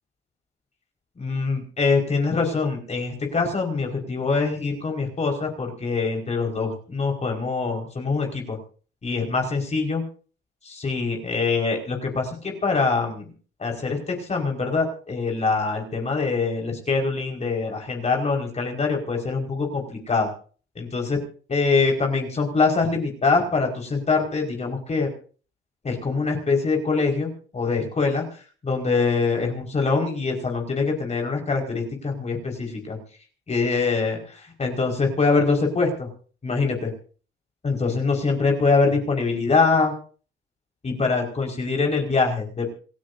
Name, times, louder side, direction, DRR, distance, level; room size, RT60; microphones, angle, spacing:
voice 1, 1.2-8.6 9.0-10.0 10.6-13.3 13.6-20.3 20.7-21.2 21.5-25.1 25.8-28.2 28.6-33.0 33.5-36.1 36.4-36.9 37.6-39.9 40.8-42.7, left 4 dB, 35° left, 1 dB, 5.2 m, -24 dB
27.5 x 13.0 x 2.7 m, 0.40 s
cardioid pair, 90°, 20 cm